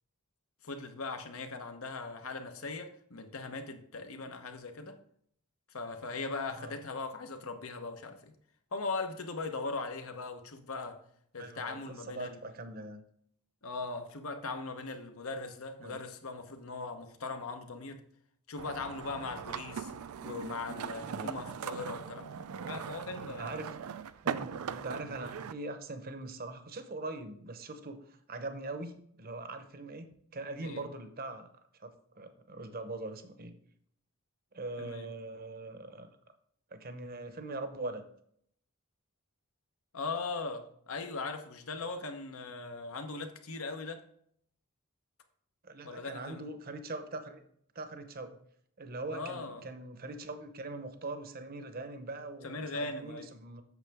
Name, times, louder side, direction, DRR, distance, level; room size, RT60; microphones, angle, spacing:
voice 1, 0.6-5.0 5.7-8.3 8.7-11.0 11.3-12.4 13.6-18.0 18.5-19.9 20.2-22.3 22.6-23.6 30.6-30.8 34.8-35.1 39.9-44.0 45.8-46.5 49.1-49.6 52.4-53.3, left 3 dB, 75° left, 1.0 m, -39 dB
voice 2, 11.4-13.0 15.8-16.0 21.0-21.3 23.2-23.8 24.2-31.5 31.8-33.6 34.5-36.1 36.7-38.1 45.6-47.4 47.7-48.4 48.8-53.6, right 2 dB, 45° right, 0.8 m, -42 dB
sound 1, 18.6-25.5, right 7 dB, 90° right, 0.4 m, -40 dB
8.2 x 6.6 x 3.5 m
head